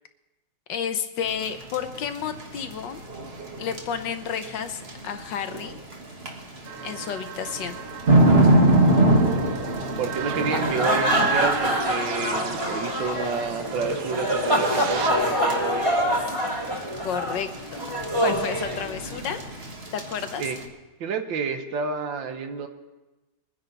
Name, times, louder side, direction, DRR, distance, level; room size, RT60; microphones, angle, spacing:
voice 1, 0.7-3.0 3.6-5.8 6.8-7.8 17.0-17.9 18.2-19.5 19.9-20.4, left 7 dB, 70° left, 9 dB, 1.3 m, -31 dB
sound 1, 1.3-20.6, right 1 dB, 30° right, 1.6 m, -26 dB
sound 2, 6.6-15.1, right 7 dB, 85° right, 1.7 m, -37 dB
voice 2, 10.0-15.9 20.4-20.6 21.0-22.7, right 5 dB, 70° right, 6 dB, 1.7 m, -30 dB
sound 3, 10.3-19.4, equal, 15° right, 2.1 m, -25 dB
22.5 x 9.9 x 4.1 m, 1.1 s
omnidirectional pair, 2.2 m